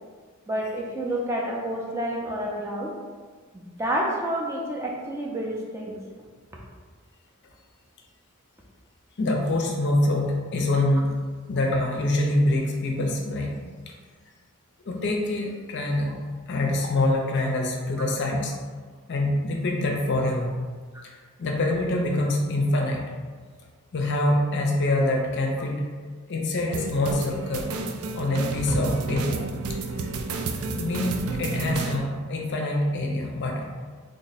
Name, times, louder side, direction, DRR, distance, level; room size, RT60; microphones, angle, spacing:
voice 1, 0.5-2.9 3.5-6.0 20.9-21.0 28.7-28.8, right 1 dB, 10° right, -2 dB, 0.4 m, -29 dB
voice 2, 9.2-11.1 11.5-13.6 13.9-14.0 14.9-16.2 16.5-18.5 19.1-20.5 21.0-23.0 23.9-25.8 26.3-27.7 28.1-29.4 30.7-33.7, left 1 dB, 55° left, 1 dB, 0.5 m, -25 dB
sound 1, 26.7-32.0, right 4 dB, 90° right, 0.4 m, -31 dB
3.5 x 2.1 x 3.9 m, 1.5 s
head